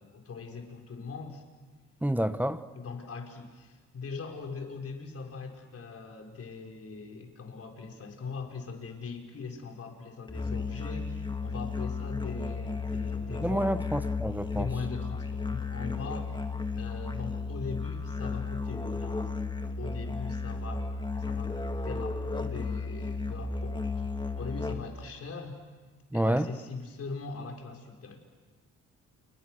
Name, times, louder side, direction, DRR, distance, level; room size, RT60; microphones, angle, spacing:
voice 1, 0.0-1.4 2.7-13.7 14.5-16.4 16.7-19.3 19.8-20.9 21.1-21.6 21.8-25.6 26.1-28.2, left 4 dB, 50° left, 2 dB, 5.3 m, -41 dB
voice 2, 2.0-2.6 13.4-14.7 26.1-26.5, right 1 dB, 5° right, 11 dB, 1.1 m, -28 dB
Musical instrument, 10.3-25.0, left 4 dB, 15° left, 1.7 m, -34 dB
30.0 x 29.5 x 6.5 m, 1.4 s
cardioid pair, 90°, 30 cm